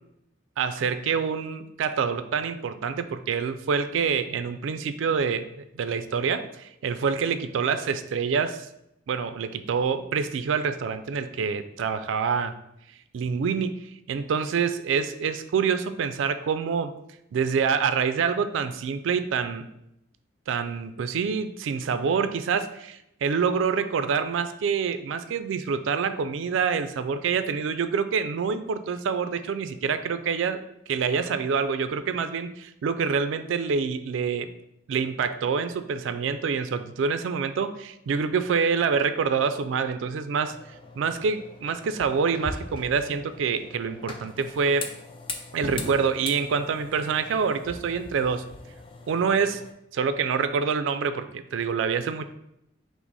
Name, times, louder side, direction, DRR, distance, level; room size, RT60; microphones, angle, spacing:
voice 1, 0.6-5.5 5.7-8.7 9.1-12.6 13.1-13.8 14.1-16.9 17.3-19.7 20.5-34.5 34.9-40.5 41.0-44.9 45.5-48.4 49.1-49.6 49.9-52.3, right 6 dB, 75° right, 11 dB, 0.3 m, -26 dB
sound 1, 40.4-49.7, left 3 dB, 25° left, 0.4 m, -40 dB
5.8 x 2.0 x 3.9 m, 0.81 s
head